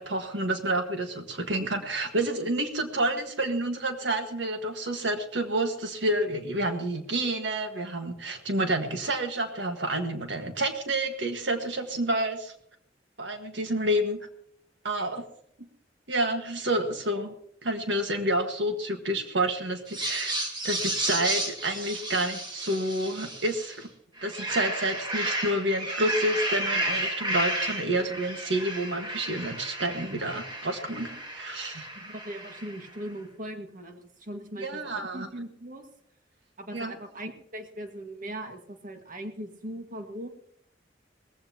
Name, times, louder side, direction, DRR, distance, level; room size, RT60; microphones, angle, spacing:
voice 1, 0.0-12.5 13.2-14.2 14.8-15.3 16.1-17.3 17.6-20.3 20.6-23.9 24.2-31.9 34.6-35.3 36.7-37.0, right 1 dB, 75° right, 5 dB, 1.7 m, -29 dB
sound 1, 19.9-23.8 24.2-32.9, right 1 dB, 25° right, 2.0 m, -32 dB
voice 2, 32.0-35.8 36.6-40.3, right 1 dB, 45° right, 5 dB, 1.8 m, -39 dB
20.0 x 15.5 x 2.9 m, 0.69 s
head